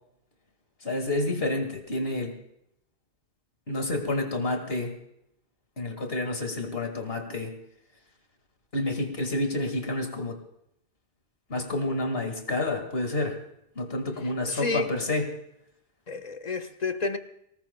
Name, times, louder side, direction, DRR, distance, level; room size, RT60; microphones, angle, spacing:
voice 1, 0.8-2.4 3.7-5.0 5.8-7.6 8.7-10.4 11.5-13.4 13.8-15.3, left 2 dB, 65° left, 4 dB, 2.2 m, -29 dB
voice 2, 14.5-14.9 16.1-17.2, left 3 dB, 40° left, 6 dB, 1.2 m, -30 dB
24.0 x 19.0 x 2.2 m, 0.78 s
omnidirectional pair, 1.1 m